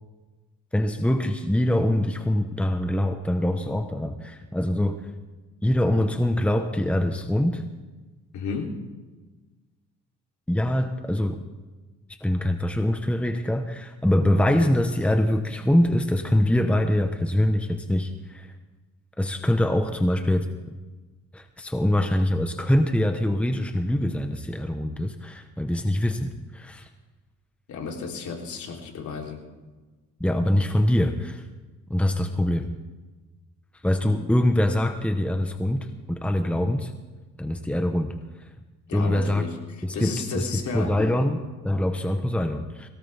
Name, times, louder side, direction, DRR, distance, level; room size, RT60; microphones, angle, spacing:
voice 1, 0.7-5.0 5.6-7.6 10.5-11.4 12.2-18.5 19.2-20.5 21.3-26.9 30.2-31.4 31.9-32.7 33.8-36.9 37.4-38.1 38.4-38.5 38.9-39.4 39.8-42.9, left 1 dB, 5° left, 6 dB, 1.2 m, -24 dB
voice 2, 8.3-8.8 27.7-29.4 34.0-34.2 38.9-41.0, left 4 dB, 70° left, 0 dB, 3.6 m, -33 dB
22.0 x 18.0 x 3.6 m, 1.2 s
cardioid pair, 90°, 30 cm